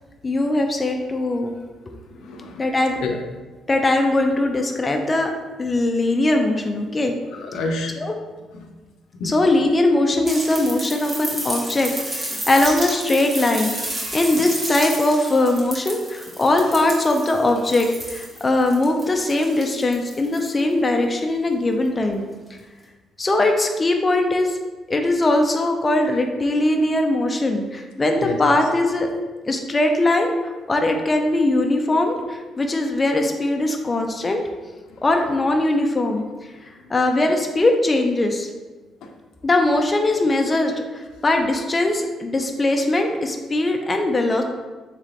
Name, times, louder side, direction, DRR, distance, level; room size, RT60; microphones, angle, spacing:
voice 1, 0.2-1.5 2.6-3.0 3.7-5.3 5.6-7.1 8.0-8.1 9.2-22.2 23.2-24.6 24.9-29.1 29.4-34.4 35.0-38.5 39.4-44.4, left 2 dB, 25° left, 3 dB, 0.4 m, -20 dB
voice 2, 1.9-2.7 3.0-3.1 7.3-7.9 8.5-8.6 9.1-9.3 12.3-12.4 28.2-28.4 34.9-35.0 36.8-36.9, left 3 dB, 80° left, 3 dB, 0.5 m, -29 dB
sound 1, 10.3-20.6 22.0-22.1, right 1 dB, 30° right, 0.9 m, -31 dB
3.2 x 3.1 x 3.8 m, 1.3 s
cardioid pair, 110°, 0 cm